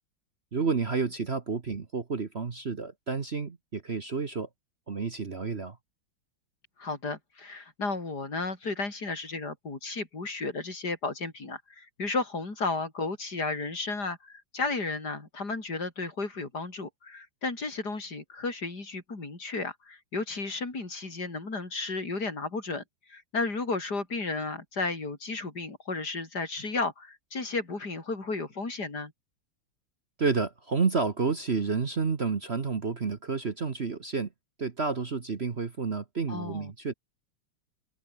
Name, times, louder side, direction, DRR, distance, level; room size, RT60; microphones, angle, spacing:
voice 1, 0.5-4.5 4.9-5.8 30.2-34.3 34.6-36.9, right 4 dB, 35° right, 1.4 m, -30 dB
voice 2, 6.8-22.8 23.1-29.1 36.3-36.7, left 3 dB, 55° left, 5.3 m, -33 dB
omnidirectional pair, 2.1 m